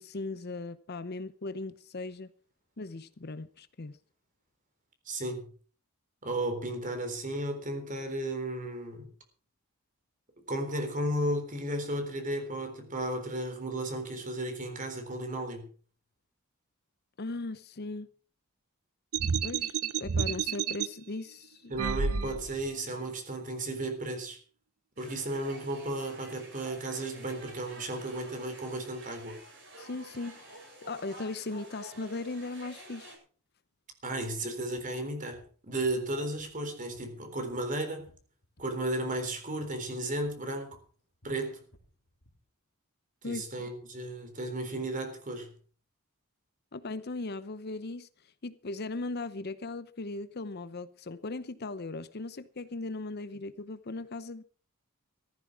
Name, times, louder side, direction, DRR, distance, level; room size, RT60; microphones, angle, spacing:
voice 1, 0.0-2.3 2.8-4.0 17.2-18.1 19.4-21.7 22.1-22.2 29.8-33.1 43.2-43.4 46.7-48.1 48.4-54.4, left 3 dB, 50° left, 0.8 m, -38 dB
voice 2, 5.1-5.5 6.2-9.1 10.5-15.7 21.7-24.4 25.0-29.4 34.0-38.1 38.6-40.8 41.2-41.6 43.2-45.5, right 1 dB, 35° right, 3.8 m, -34 dB
sound 1, 19.1-20.9 21.7-22.7, right 6 dB, 85° right, 0.7 m, -30 dB
sound 2, 25.0-33.2, right 1 dB, 60° right, 8.0 m, -50 dB
sound 3, 35.3-35.5 35.8-36.7 36.9-38.8 39.1-39.3 39.6-39.8 40.2-40.4 40.7-42.4, equal, 75° left, 3.6 m, -61 dB
15.0 x 14.0 x 4.8 m
head